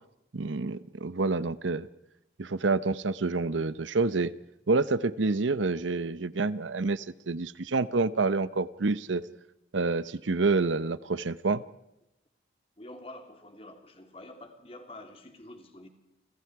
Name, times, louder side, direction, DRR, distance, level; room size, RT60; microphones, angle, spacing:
voice 1, 0.3-1.9 2.4-4.3 4.7-9.2 9.7-11.6, right 3 dB, 90° right, 16 dB, 0.8 m, -28 dB
voice 2, 12.8-15.9, left 1 dB, 30° left, 5 dB, 2.8 m, -47 dB
29.5 x 25.5 x 4.8 m, 0.87 s
head